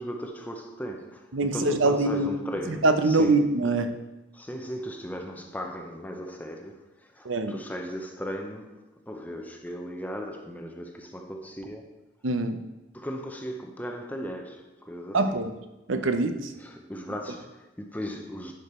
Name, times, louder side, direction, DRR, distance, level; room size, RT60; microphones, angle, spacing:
voice 1, 0.0-3.5 4.3-12.0 12.9-15.4 16.5-18.5, equal, 10° left, 0.7 m, -37 dB
voice 2, 1.3-2.3 2.7-3.9 7.2-7.5 12.2-12.6 15.1-15.5 15.9-16.5, right 2 dB, 85° right, 0.8 m, -24 dB
10.5 x 5.2 x 4.4 m
head